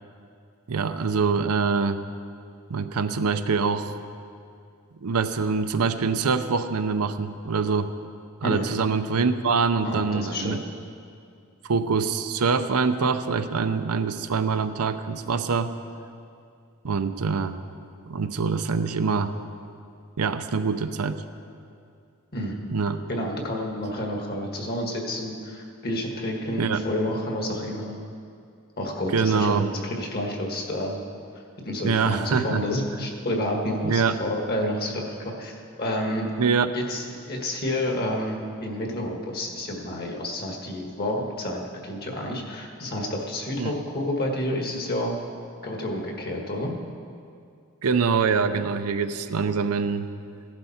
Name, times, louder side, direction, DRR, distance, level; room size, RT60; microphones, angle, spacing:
voice 1, 0.7-2.0 2.7-3.9 5.0-7.9 8.4-10.6 11.6-15.7 16.8-17.6 18.1-19.4 20.2-21.2 22.7-23.0 26.6-26.8 29.1-29.6 31.8-32.6 33.8-34.2 36.4-36.8 43.6-43.7 47.8-50.1, right 5 dB, 85° right, 9 dB, 0.6 m, -24 dB
voice 2, 9.8-10.6 22.3-22.6 23.1-28.0 28.8-31.0 31.6-36.3 36.7-45.1 45.6-46.7, left 1 dB, 45° left, 1 dB, 1.7 m, -29 dB
16.0 x 11.5 x 4.3 m, 2.4 s
head